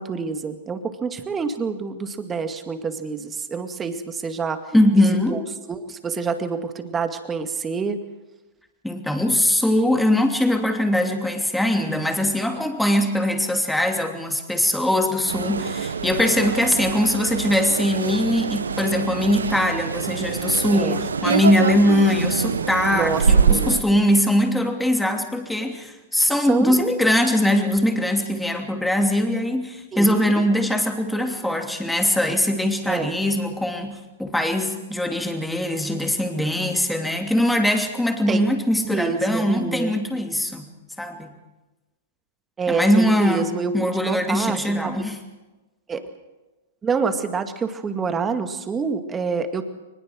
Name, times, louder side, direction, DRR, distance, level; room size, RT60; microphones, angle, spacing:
voice 1, 0.0-4.6 5.0-5.4 5.7-8.0 20.7-21.0 22.9-24.0 26.5-26.8 29.9-30.5 32.9-33.1 38.3-38.5 38.8-40.0 42.6-44.9 45.9-46.1 46.8-49.6, right 5 dB, 20° right, 7 dB, 2.1 m, -27 dB
voice 2, 4.7-5.5 8.8-40.7 41.0-41.3 42.7-45.2, left 1 dB, 5° left, 4 dB, 2.8 m, -21 dB
sound 1, 15.3-23.8, right 5 dB, 85° right, 1.0 m, -24 dB
22.5 x 20.5 x 6.4 m, 1.1 s
hypercardioid pair, 115°, 0 cm